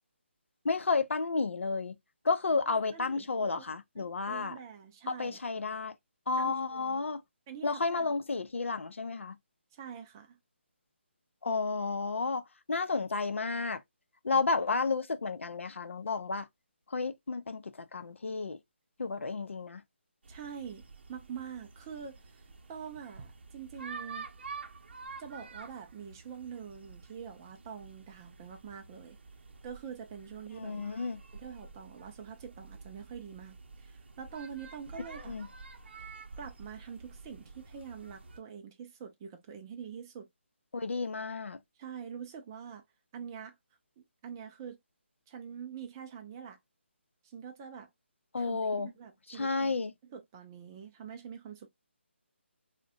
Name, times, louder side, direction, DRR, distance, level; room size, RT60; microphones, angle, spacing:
voice 1, 0.6-1.9 2.2-4.6 5.1-5.9 6.3-7.2 7.6-9.4 11.4-13.8 14.2-16.5 16.9-18.6 19.0-19.8 30.6-31.2 35.3-35.5 40.7-41.6 48.3-48.9 49.3-49.9, left 4 dB, 90° left, 0.5 m, -32 dB
voice 2, 2.7-3.6 4.0-5.6 6.4-7.0 7.5-8.1 9.7-10.4 20.3-20.8 21.1-22.4 22.7-24.3 25.2-29.2 29.6-31.0 31.3-33.6 33.8-35.4 36.4-40.3 41.8-42.8 43.1-43.5 44.2-44.8 45.3-46.6 47.2-47.9 48.4-51.7, right 7 dB, 20° right, 0.3 m, -45 dB
sound 1, 20.2-38.4, right 4 dB, 60° right, 0.6 m, -49 dB
2.6 x 2.1 x 3.7 m
hypercardioid pair, 165°, 7 cm